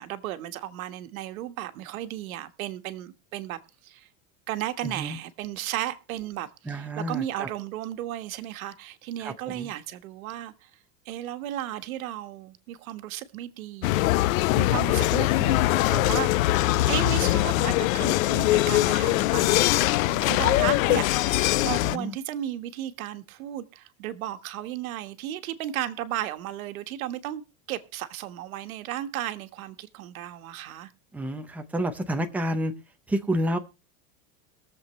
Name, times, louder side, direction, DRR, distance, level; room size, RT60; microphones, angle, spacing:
voice 1, 0.0-4.1 4.5-10.7 11.0-14.0 14.6-16.6 16.9-27.4 27.7-30.9, right 13 dB, 85° right, 1.5 m, -34 dB
voice 2, 4.8-5.2 6.7-7.5 9.2-9.7 21.6-22.2 31.1-32.7 33.1-33.6, right 1 dB, 5° right, 0.6 m, -30 dB
sound 1, 13.8-22.0, left 17 dB, 75° left, 0.6 m, -22 dB
22.0 x 7.5 x 3.1 m
supercardioid pair, 175°, 41 cm